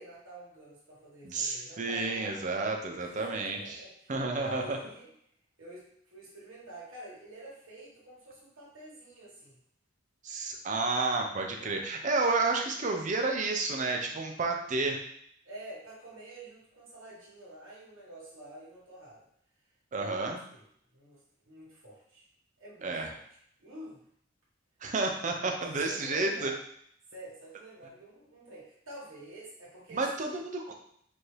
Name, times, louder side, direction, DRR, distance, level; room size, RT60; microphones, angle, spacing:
voice 1, 0.0-2.4 3.0-5.1 5.6-9.6 11.6-11.8 15.4-19.2 19.9-20.6 20.9-22.3 22.6-23.2 23.6-24.0 25.8-26.6 27.1-30.5, right 1 dB, 75° right, -8 dB, 1.6 m, -48 dB
voice 2, 1.2-3.6 4.1-4.8 10.2-15.0 19.9-20.4 22.8-23.1 24.8-26.5 29.9-30.7, right 3 dB, 40° right, 2 dB, 0.6 m, -31 dB
4.5 x 2.7 x 3.2 m, 0.68 s
head